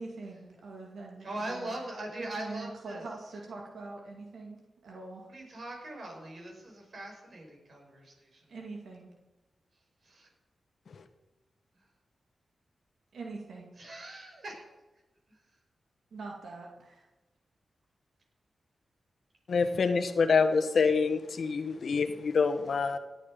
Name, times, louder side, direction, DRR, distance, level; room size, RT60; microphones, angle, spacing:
voice 1, 0.0-1.8 2.2-5.3 8.5-9.1 13.1-13.7 16.1-17.1, right 3 dB, 80° right, 0 dB, 2.3 m, -43 dB
voice 2, 1.2-3.0 5.3-8.6 10.0-10.3 11.8-11.9 13.8-14.7 15.3-15.6, right 1 dB, 60° right, 0 dB, 6.0 m, -41 dB
voice 3, 19.5-23.0, left 5 dB, 70° left, 8 dB, 1.3 m, -26 dB
18.0 x 8.8 x 5.2 m, 1.1 s
cardioid pair, 50°, 0 cm